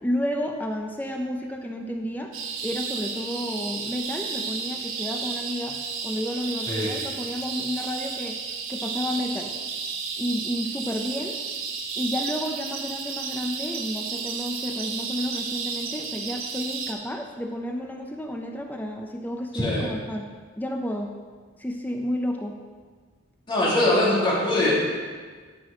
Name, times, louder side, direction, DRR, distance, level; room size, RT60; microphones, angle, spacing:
voice 1, 0.0-2.3 2.6-8.4 8.7-9.6 10.2-11.4 12.0-20.3 20.6-21.1 21.6-22.6, equal, 10° left, 2 dB, 0.6 m, -31 dB
sound 1, 2.3-16.9, right 5 dB, 70° right, 1.0 m, -32 dB
voice 2, 19.5-19.9 23.5-24.7, left 1 dB, 25° left, -7 dB, 2.8 m, -22 dB
11.0 x 6.1 x 5.0 m, 1.5 s
head